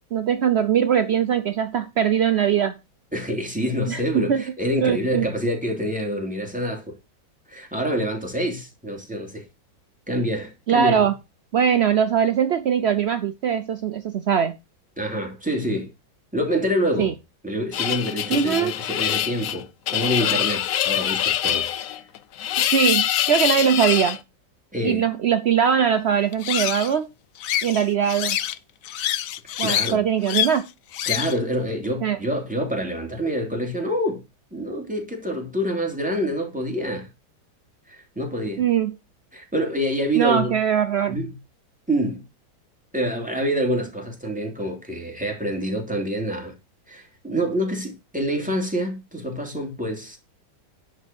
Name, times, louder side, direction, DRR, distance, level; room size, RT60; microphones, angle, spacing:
voice 1, 0.1-2.8 3.9-4.4 4.8-5.3 10.7-11.1 11.5-14.6 17.0-17.1 18.3-18.7 22.7-24.2 24.8-27.1 27.6-28.4 29.6-30.7 32.0-32.2 38.6-38.9 40.2-41.2, right 8 dB, 75° right, 0.6 m, -21 dB
voice 2, 3.1-6.9 7.5-9.4 10.1-11.1 15.0-15.9 16.3-17.1 17.4-22.0 22.8-22.9 24.7-25.1 29.6-30.0 31.1-34.2 34.5-37.1 37.9-38.6 39.3-40.5 41.1-41.3 41.9-42.2 42.9-46.5 46.9-50.2, equal, 5° right, 2.9 m, -26 dB
sound 1, 17.7-24.2 26.3-26.9 27.4-28.6 28.8-29.9 30.3-30.6 30.9-31.4, left 11 dB, 65° left, 0.9 m, -25 dB
10.5 x 4.5 x 6.9 m
omnidirectional pair, 1.9 m